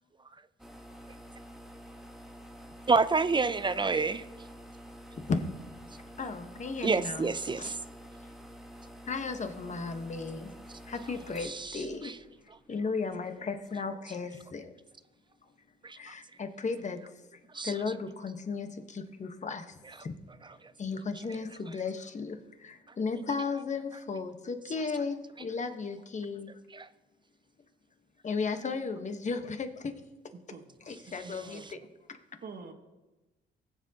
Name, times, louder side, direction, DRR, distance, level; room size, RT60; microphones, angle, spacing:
sound 1, 0.6-13.0, equal, ahead, 1.2 m, -49 dB
voice 1, 2.9-4.2 6.8-7.8 11.4-12.1 15.8-16.0 17.5-17.7 26.7-26.9, right 4 dB, 25° right, 14 dB, 0.4 m, -28 dB
voice 2, 6.2-7.7 9.1-10.5 10.9-12.1 12.7-14.7 16.0-17.0 17.3-20.2 20.8-26.5 28.2-30.0 30.8-32.2, left 4 dB, 35° left, 7 dB, 1.1 m, -35 dB
voice 3, 30.5-30.9 31.2-31.9 32.4-32.7, right 4 dB, 50° right, 5 dB, 1.4 m, -47 dB
20.5 x 7.6 x 2.8 m, 1.1 s
cardioid pair, 90°, 20 cm